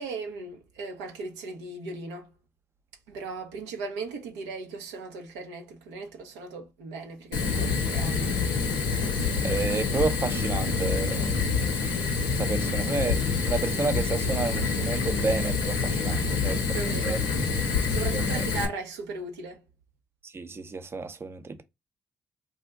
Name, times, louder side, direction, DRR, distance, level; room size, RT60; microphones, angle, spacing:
voice 1, 0.0-2.3 3.1-8.4 16.5-17.2 17.7-19.6, right 3 dB, 80° right, 0.5 m, -37 dB
Fire, 7.3-18.6, left 4 dB, 80° left, 0.6 m, -27 dB
voice 2, 9.4-11.4 12.4-17.2 18.1-18.5 20.2-21.6, right 4 dB, 35° right, 0.5 m, -31 dB
2.5 x 2.1 x 3.6 m
hypercardioid pair, 45°, 7 cm